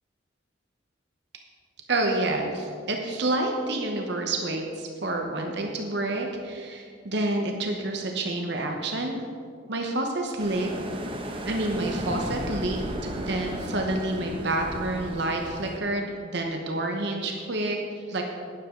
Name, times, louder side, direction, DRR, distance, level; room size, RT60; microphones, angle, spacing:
voice 1, 1.9-9.1 9.7-10.7 11.4-12.8 13.2-18.2, right 2 dB, 60° right, 2 dB, 1.0 m, -28 dB
sound 1, 10.4-15.8, equal, 30° right, 0.9 m, -35 dB
12.0 x 10.0 x 3.8 m, 2.1 s
head